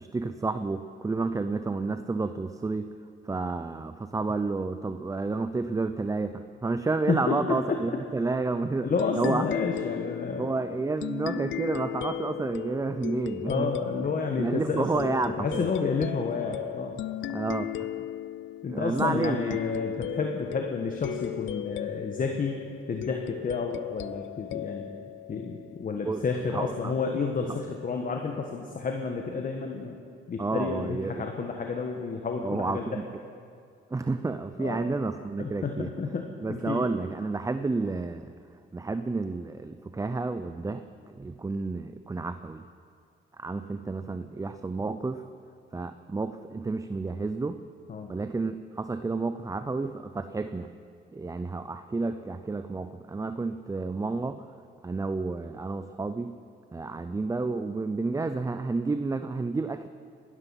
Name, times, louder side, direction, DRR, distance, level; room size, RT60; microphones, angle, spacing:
voice 1, 0.0-2.9 3.3-8.9 9.2-9.5 10.4-13.7 14.4-15.7 17.2-17.9 18.7-19.6 26.0-26.2 26.5-27.0 30.4-31.3 32.4-33.0 33.9-35.9 36.4-38.3 38.7-42.6 43.4-45.2 45.7-47.6 48.1-50.7 51.1-54.5 54.8-56.3 56.7-59.9, right 3 dB, 15° right, 10 dB, 0.6 m, -30 dB
voice 2, 7.1-7.8 8.8-10.5 13.4-15.1 15.4-17.0 18.6-22.6 22.9-24.9 25.3-30.0 30.3-33.0 34.6-34.9 35.4-36.8 47.9-48.1, left 4 dB, 45° left, 3 dB, 1.4 m, -30 dB
sound 1, 9.0-26.1, left 12 dB, 70° left, 0.5 m, -36 dB
19.5 x 12.5 x 5.8 m, 2.3 s
cardioid pair, 90°, 20 cm